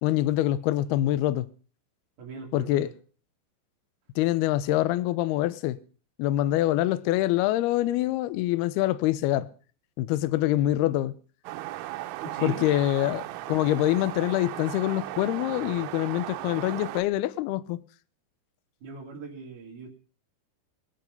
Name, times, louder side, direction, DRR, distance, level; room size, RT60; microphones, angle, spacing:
voice 1, 0.0-1.5 2.5-2.9 4.2-5.8 6.2-9.5 10.0-11.1 12.4-17.8, left 14 dB, 80° left, 2.3 m, -25 dB
voice 2, 2.2-2.9 12.2-12.7 18.8-20.0, right 4 dB, 45° right, 3.9 m, -39 dB
sound 1, 11.5-17.0, right 15 dB, 80° right, 3.3 m, -36 dB
22.5 x 8.9 x 5.4 m
omnidirectional pair, 5.5 m